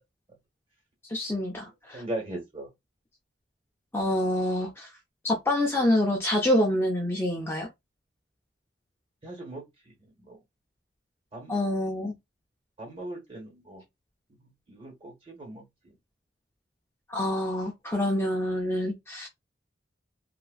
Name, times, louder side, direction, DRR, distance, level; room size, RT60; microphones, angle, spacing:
voice 1, 1.1-2.0 3.9-4.9 5.2-7.7 11.5-12.1 17.1-19.3, left 1 dB, 15° left, 0.5 m, -26 dB
voice 2, 1.9-2.7 9.2-10.4 11.3-11.5 12.8-13.8 14.4-15.9, right 1 dB, 30° right, 1.3 m, -39 dB
2.8 x 2.4 x 2.4 m
head